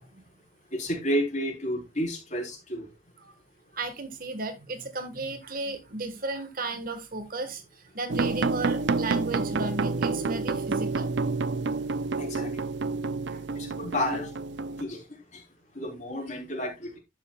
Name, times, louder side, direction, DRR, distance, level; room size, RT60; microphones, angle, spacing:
voice 1, 0.7-2.9 9.3-9.4 12.2-12.5 13.6-14.3 14.8-15.0 15.3-15.4 15.8-17.0, equal, 40° left, 3.5 m, -31 dB
voice 2, 3.7-11.1 13.3-13.4, right 3 dB, 50° right, 1.5 m, -34 dB
sound 1, 8.1-14.8, right 4 dB, 65° right, 0.6 m, -29 dB
11.5 x 8.1 x 2.3 m
head